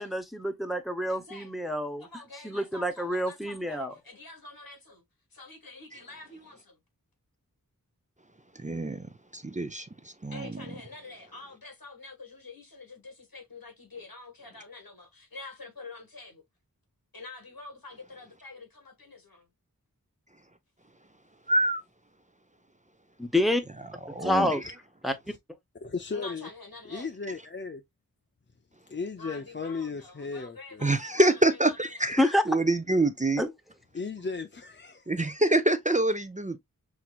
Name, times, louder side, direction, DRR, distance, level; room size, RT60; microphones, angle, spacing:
voice 1, 0.0-2.1 2.4-3.9 23.2-23.6 24.2-24.6 25.0-25.1 32.2-32.4 33.4-33.5, left 1 dB, ahead, 0.9 m, -27 dB
voice 2, 1.1-1.7 2.0-5.0 5.3-6.8 10.3-16.4 17.1-19.5 26.1-27.1 29.2-31.6 32.1-32.3, left 3 dB, 80° left, 1.7 m, -46 dB
voice 3, 8.6-9.1 9.3-10.6 21.5-21.8 24.1-24.6 30.8-33.4 35.1-36.6, right 1 dB, 20° right, 0.6 m, -26 dB
voice 4, 25.8-26.5 26.9-27.8 28.9-30.9 33.9-35.1, left 4 dB, 35° left, 0.5 m, -36 dB
6.0 x 2.8 x 2.4 m
wide cardioid pair, 45°, 35 cm